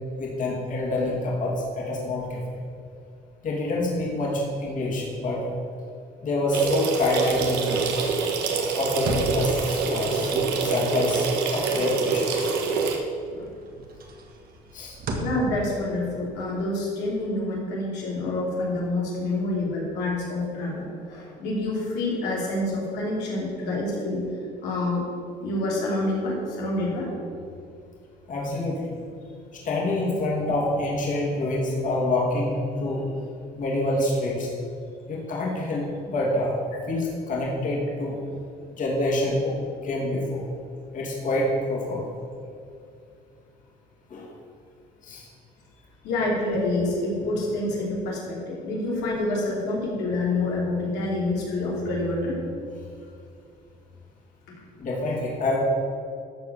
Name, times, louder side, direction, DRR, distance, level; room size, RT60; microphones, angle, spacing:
voice 1, 0.2-2.6 3.4-5.5 6.2-8.1 8.7-12.5 14.7-15.0 28.3-28.9 29.5-33.0 33.5-34.5 35.1-36.6 36.9-38.2 38.7-39.6 39.8-40.4 40.9-42.0 44.1-44.3 45.0-45.3 54.8-55.6, left 2 dB, 50° left, -4 dB, 2.7 m, -27 dB
sound 1, 6.5-12.9 13.2-18.6, right 2 dB, 60° right, 1.6 m, -39 dB
sound 2, 6.5-13.0, right 5 dB, 80° right, 1.5 m, -26 dB
voice 2, 15.2-24.2 24.6-25.0 25.4-27.1 30.3-30.4 46.0-52.4, left 2 dB, 90° left, -4 dB, 2.9 m, -27 dB
13.5 x 4.8 x 6.9 m, 2.4 s
cardioid pair, 110°, 17 cm